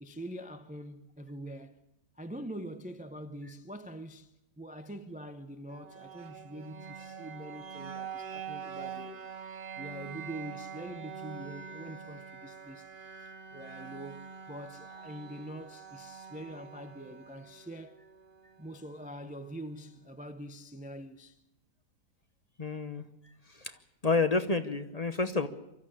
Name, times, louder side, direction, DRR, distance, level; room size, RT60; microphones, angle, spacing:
voice 1, 0.0-1.8 2.2-4.3 4.6-9.3 9.8-18.0 18.6-21.4, right 1 dB, 10° right, 0.4 m, -44 dB
sound 1, 5.7-19.6, right 6 dB, 40° right, 1.0 m, -45 dB
voice 2, 22.6-23.0 23.5-23.8 24.0-25.5, left 3 dB, 30° left, 0.9 m, -29 dB
24.5 x 14.0 x 8.7 m
omnidirectional pair, 1.7 m